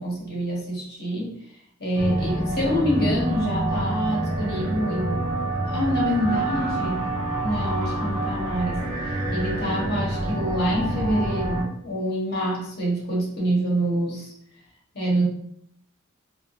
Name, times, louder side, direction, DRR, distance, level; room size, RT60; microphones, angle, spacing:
voice 1, 0.0-1.3 1.8-5.3 5.7-7.1 7.4-14.3 14.9-15.3, equal, 50° left, -4 dB, 1.4 m, -26 dB
sound 1, 1.9-11.6, right 1 dB, 30° right, 1.2 m, -27 dB
3.6 x 3.4 x 2.7 m, 0.69 s
head